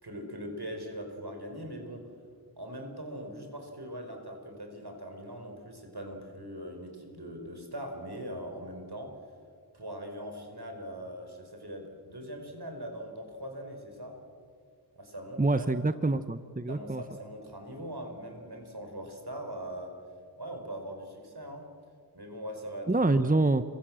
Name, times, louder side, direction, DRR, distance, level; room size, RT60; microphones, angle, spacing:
voice 1, 0.0-2.0 2.6-9.1 9.7-14.2 14.9-15.7 16.7-19.9 20.4-21.7 22.1-23.2, equal, 65° right, 4 dB, 5.2 m, -41 dB
voice 2, 15.4-17.0 22.9-23.6, right 2 dB, 20° right, 11 dB, 0.8 m, -26 dB
30.0 x 24.0 x 7.7 m, 2.2 s
wide cardioid pair, 45°, 42 cm